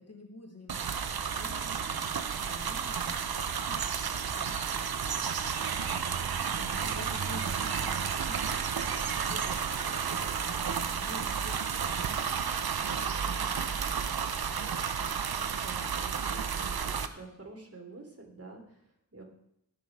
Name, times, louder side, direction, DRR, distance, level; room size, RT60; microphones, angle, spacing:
voice 1, 0.0-5.8 6.5-14.1 14.7-15.1, left 2 dB, 40° left, 1 dB, 3.1 m, -50 dB
sound 1, 0.7-17.1, right 7 dB, 75° right, 0.8 m, -32 dB
voice 2, 15.5-19.2, right 3 dB, 40° right, 1 dB, 3.2 m, -48 dB
17.0 x 6.1 x 4.9 m, 0.75 s
cardioid pair, 40°, 37 cm